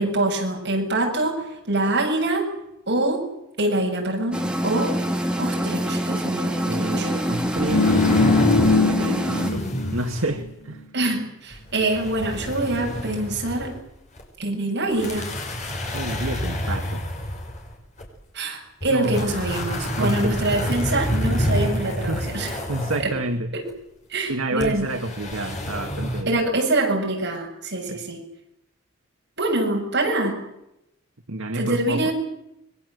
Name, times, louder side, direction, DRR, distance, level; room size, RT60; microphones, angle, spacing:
voice 1, 0.0-2.5 2.9-3.2 3.6-5.0 5.4-7.1 10.9-13.7 14.4-15.3 18.3-22.6 23.0-23.1 23.5-23.6 24.1-24.9 26.2-28.2 29.4-30.4 31.5-32.1, right 2 dB, 55° right, 1 dB, 7.8 m, -25 dB
sound 1, 4.3-9.5, equal, 5° right, 2.7 m, -25 dB
voice 2, 6.6-8.2 8.7-9.6 9.9-10.8 15.9-17.0 18.9-19.2 20.0-20.5 22.1-22.3 22.7-23.5 24.3-26.4 27.9-28.0 31.3-32.1, right 2 dB, 70° right, 6 dB, 1.7 m, -29 dB
sound 2, 7.4-10.0 10.3-10.4, left 4 dB, 85° left, 0.9 m, -21 dB
sound 3, 7.6-8.9 9.1-10.4 11.5-13.8 14.2-14.3 14.9-18.1 18.8-23.2 24.6-26.2, equal, 35° left, 5.9 m, -28 dB
26.0 x 22.5 x 8.0 m, 0.85 s
head